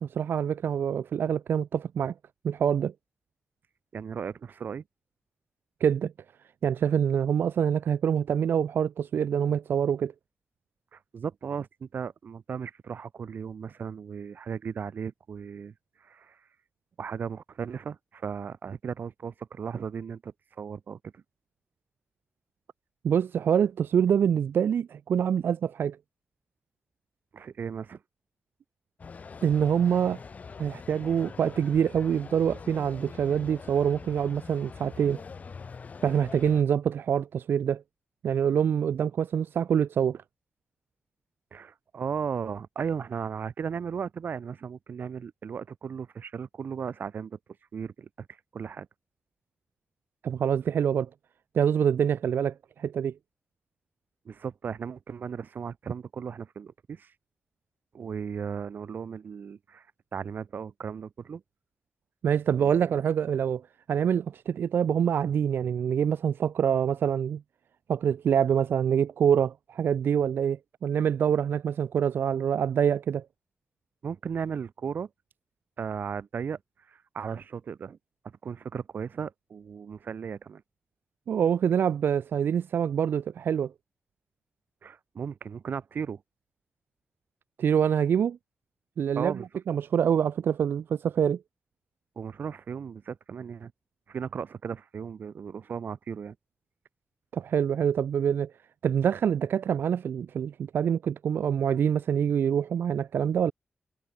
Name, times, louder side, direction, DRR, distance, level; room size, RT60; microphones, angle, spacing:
voice 1, 0.0-2.1 2.4-2.9 5.8-6.1 6.6-10.1 23.0-26.0 29.4-30.2 30.6-35.2 36.0-37.8 38.2-40.2 50.2-51.1 51.5-53.1 62.2-63.6 63.9-67.4 67.9-73.2 81.3-83.7 87.6-88.4 89.0-91.4 97.3-98.5 98.8-103.5, right 8 dB, 80° right, 0.4 m, -25 dB
voice 2, 3.9-4.8 10.9-15.7 16.0-16.4 17.0-21.2 27.3-28.0 41.5-47.4 47.7-48.3 48.5-48.9 54.2-57.1 57.9-59.9 60.1-61.4 62.5-62.9 74.0-75.1 75.8-76.6 76.9-78.0 78.2-80.6 84.8-86.2 89.1-89.5 92.1-93.7 94.1-96.3, right 6 dB, 65° right, 1.5 m, -36 dB
sound 1, 29.0-36.6, left 5 dB, 45° left, 2.3 m, -44 dB
wide cardioid pair, 160°, 4 cm